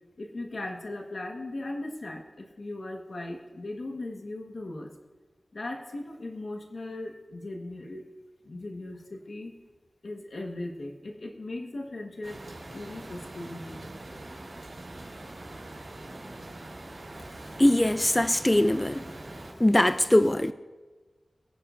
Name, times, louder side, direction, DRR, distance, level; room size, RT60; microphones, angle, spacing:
voice 1, 0.2-4.9 5.5-8.0 8.4-9.5 10.0-12.4 12.7-13.9, left 2 dB, 70° left, 1.4 m, -38 dB
sound 1, 12.2-19.5, right 2 dB, 65° right, 4.6 m, -43 dB
voice 2, 17.6-19.1 19.6-20.5, left 1 dB, 15° left, 0.3 m, -22 dB
23.0 x 10.5 x 2.6 m
wide cardioid pair, 85°, 0 cm